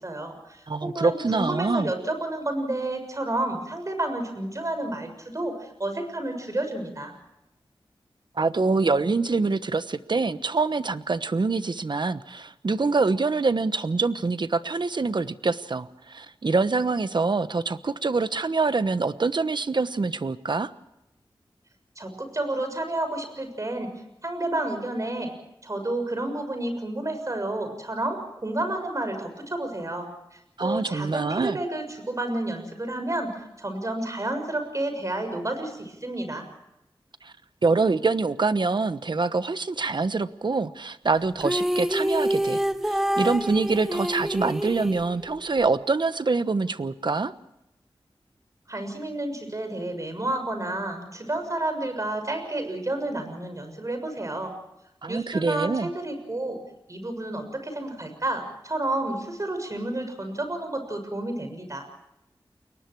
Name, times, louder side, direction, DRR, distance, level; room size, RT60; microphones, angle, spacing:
voice 1, 0.0-7.1 22.0-23.9 24.2-25.3 25.6-36.4 48.7-54.5 55.1-56.6 56.9-61.9, right 1 dB, 35° right, 6 dB, 6.7 m, -30 dB
voice 2, 0.7-1.9 8.4-20.7 30.6-31.6 37.2-37.3 37.6-42.6 42.9-47.3 55.0-55.9, right 3 dB, 55° right, 13 dB, 1.1 m, -25 dB
sound 1, 41.4-45.7, equal, 5° right, 0.7 m, -27 dB
30.0 x 22.5 x 4.7 m, 0.86 s
wide cardioid pair, 80°, 9 cm